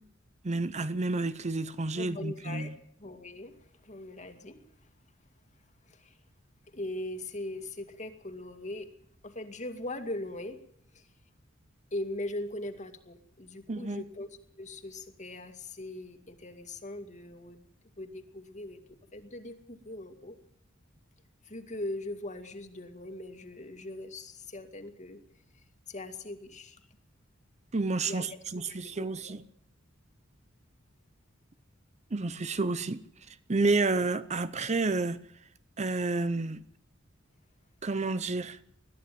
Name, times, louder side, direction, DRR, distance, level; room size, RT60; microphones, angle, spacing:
voice 1, 0.4-2.7 13.7-14.0 27.7-29.4 32.1-33.0 33.5-35.2 35.8-36.6 37.8-38.6, right 3 dB, 35° right, 0.7 m, -30 dB
voice 2, 1.9-2.7 3.0-4.9 5.8-6.2 6.7-8.9 9.2-10.6 10.9-11.1 11.9-14.3 14.6-17.7 18.0-18.8 19.1-20.4 21.4-25.2 25.5-26.9 28.0-29.4, left 1 dB, 35° left, 2.3 m, -40 dB
21.5 x 14.0 x 9.3 m
head